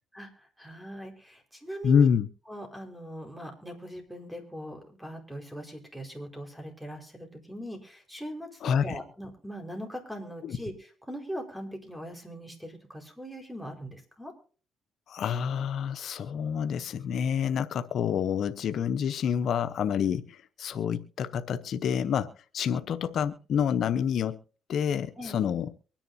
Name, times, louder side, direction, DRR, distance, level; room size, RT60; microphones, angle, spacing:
voice 1, 0.1-2.1 2.5-14.3 25.2-25.4, equal, 5° right, 4 dB, 4.8 m, -41 dB
voice 2, 1.8-2.3 8.6-9.0 10.4-10.6 15.1-24.4 24.7-25.7, left 7 dB, 65° left, 10 dB, 0.8 m, -28 dB
24.0 x 10.0 x 2.8 m, 0.39 s
cardioid pair, 90°, 0 cm